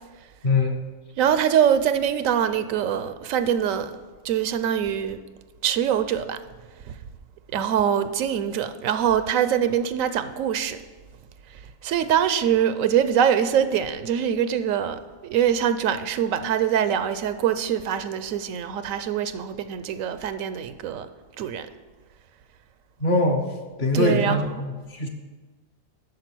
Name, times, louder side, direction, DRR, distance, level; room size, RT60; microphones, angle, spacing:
voice 1, 0.4-0.8 23.0-23.5 23.8-25.1, left 2 dB, 45° left, 1.0 m, -22 dB
voice 2, 1.2-3.9 4.2-5.2 5.6-6.4 6.8-7.0 7.5-10.8 11.5-21.1 21.4-21.7 23.9-24.5, right 9 dB, 85° right, 1.0 m, -24 dB
9.0 x 6.4 x 6.1 m
omnidirectional pair, 1.4 m